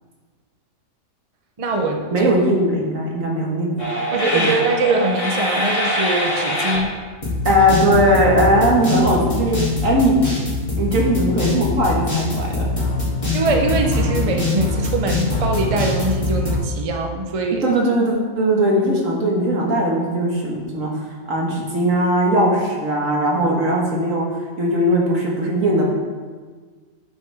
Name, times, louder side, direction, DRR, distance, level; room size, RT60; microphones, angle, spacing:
voice 1, 1.6-2.3 4.1-7.0 13.3-17.7, right 3 dB, 35° right, 3 dB, 0.6 m, -22 dB
voice 2, 2.1-3.9 4.3-4.5 7.5-10.2 10.8-12.7 17.6-21.0 21.3-24.3 24.6-25.9, equal, 70° right, -2 dB, 1.9 m, -19 dB
sound 1, 3.8-6.8 7.2-16.6, left 2 dB, 25° left, 2.5 m, -23 dB
11.0 x 6.8 x 3.5 m, 1.5 s
omnidirectional pair, 1.4 m